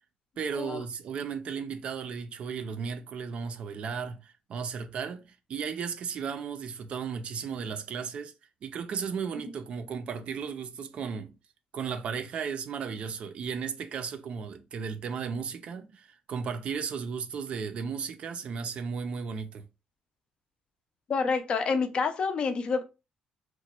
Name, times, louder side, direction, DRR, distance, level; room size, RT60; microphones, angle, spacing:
voice 1, 0.4-8.3 8.6-11.4 11.7-19.6, right 6 dB, 45° right, 0.5 m, -35 dB
voice 2, 21.1-22.8, left 5 dB, 35° left, 0.5 m, -28 dB
3.0 x 2.2 x 4.2 m
cardioid pair, 165°, 3 cm